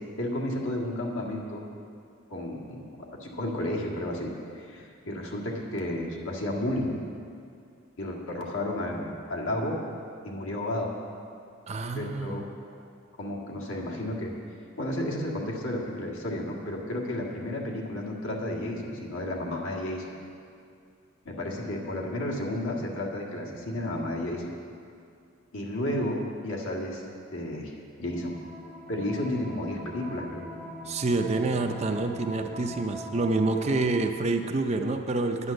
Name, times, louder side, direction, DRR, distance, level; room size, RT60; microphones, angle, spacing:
voice 1, 0.2-1.6 2.3-7.0 8.0-9.8 10.2-10.9 12.0-12.4 13.2-14.3 14.8-20.2 21.3-24.5 25.5-27.0 27.3-27.7 28.0-28.4 28.9-30.4, left 1 dB, 70° left, -2 dB, 1.8 m, -32 dB
voice 2, 11.7-12.4 30.9-35.5, right 3 dB, 30° right, 5 dB, 0.5 m, -27 dB
sound 1, 28.1-34.0, equal, 10° left, 0.7 m, -42 dB
9.8 x 9.6 x 6.5 m, 2.4 s
head